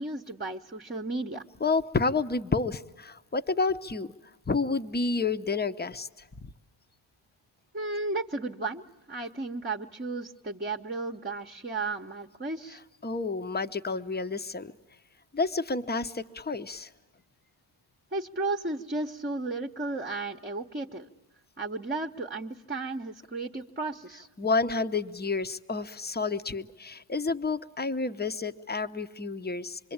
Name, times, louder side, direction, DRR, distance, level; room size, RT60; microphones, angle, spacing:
voice 1, 0.0-1.4 7.7-12.8 18.1-21.1 21.6-24.3, right 3 dB, 20° right, 2 dB, 1.0 m, -34 dB
voice 2, 1.6-4.1 4.5-6.1 13.0-14.7 15.3-16.9 24.4-29.8, left 4 dB, 20° left, 11 dB, 0.9 m, -29 dB
25.5 x 23.0 x 8.8 m, 1.1 s
cardioid pair, 60°, 50 cm